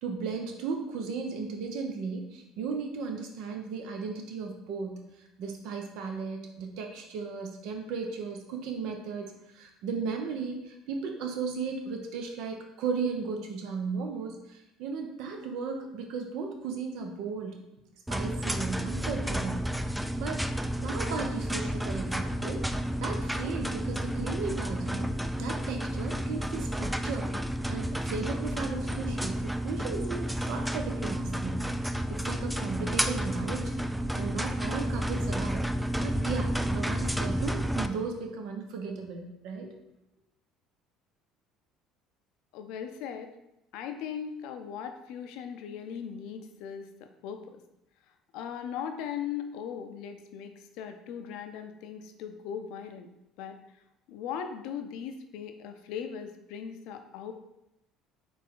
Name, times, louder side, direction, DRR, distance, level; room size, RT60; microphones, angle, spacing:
voice 1, 0.0-5.0 5.4-17.6 18.1-19.7 20.2-20.4 20.8-22.7 23.0-27.3 27.7-31.6 32.1-33.7 34.1-35.7 36.0-39.7, right 5 dB, 70° right, 3 dB, 0.7 m, -35 dB
sound 1, 18.1-37.9, equal, 5° right, 0.3 m, -31 dB
voice 2, 42.5-43.3 43.7-47.4 48.3-53.1 53.4-53.6 54.1-57.3, left 8 dB, 75° left, 6 dB, 0.5 m, -38 dB
4.2 x 3.2 x 3.7 m, 0.87 s
supercardioid pair, 80°, 0 cm